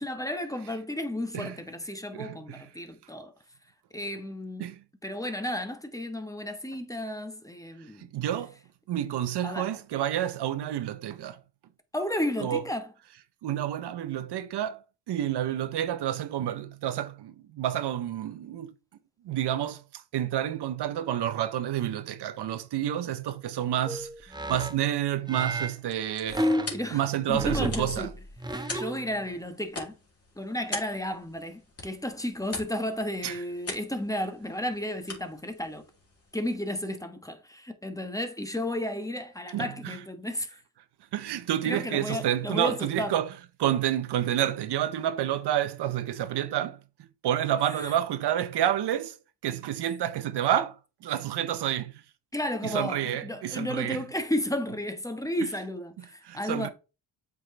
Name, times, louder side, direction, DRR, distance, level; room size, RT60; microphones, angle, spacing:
voice 1, 0.0-3.3 3.9-4.7 5.0-8.1 9.4-9.7 11.9-12.9 26.3-28.1 28.5-29.9 30.4-35.8 36.3-40.5 41.6-43.1 47.7-47.9 52.3-56.7, left 1 dB, 10° left, 1.2 m, -33 dB
voice 2, 2.1-2.7 4.6-4.8 8.0-8.5 8.9-11.4 12.4-12.6 13.4-14.8 15.1-18.7 19.2-26.4 26.9-28.1 33.2-33.4 39.5-40.0 41.1-43.3 43.6-46.8 47.2-49.2 49.4-50.8 51.0-52.0 52.6-54.0 56.2-56.7, right 11 dB, 65° right, 0.8 m, -29 dB
sound 1, 23.9-24.8 25.3-25.7 26.3-27.0 27.3-29.2, right 1 dB, 10° right, 1.0 m, -31 dB
sound 2, 25.6-36.8, left 3 dB, 35° left, 3.3 m, -44 dB
7.7 x 4.9 x 3.3 m
cardioid pair, 75°, 43 cm